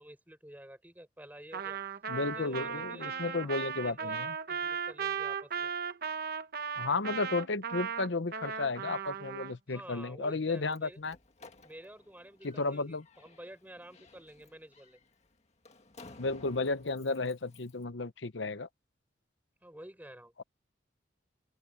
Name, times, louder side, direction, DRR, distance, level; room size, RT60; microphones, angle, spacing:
voice 1, 0.0-1.8 2.3-4.2 4.5-5.7 9.7-11.0 11.6-15.0 19.6-20.3, right 1 dB, 10° right, 5.4 m, -51 dB
Trumpet, 1.5-9.5, right 6 dB, 50° right, 1.1 m, -36 dB
voice 2, 2.1-4.3 6.8-11.2 12.4-13.0 16.2-18.7, left 3 dB, 70° left, 0.9 m, -33 dB
Slam, 10.4-17.8, left 3 dB, 35° left, 1.7 m, -57 dB
open air
head